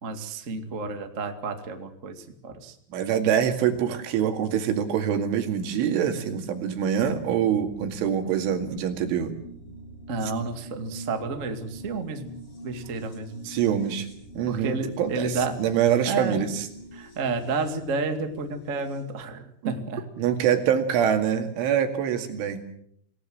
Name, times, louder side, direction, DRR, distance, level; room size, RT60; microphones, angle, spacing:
voice 1, 0.0-2.7 10.1-12.3 12.6-13.5 14.5-15.6 16.0-16.4 16.9-20.0, right 4 dB, 50° right, 6 dB, 0.8 m, -31 dB
voice 2, 2.9-9.3 13.4-14.1 14.4-16.7 19.6-19.7 20.2-22.7, right 8 dB, 85° right, 6 dB, 4.7 m, -25 dB
sound 1, 7.0-19.0, right 2 dB, 30° left, 7.5 m, -44 dB
27.0 x 18.0 x 7.7 m, 0.68 s
omnidirectional pair, 5.4 m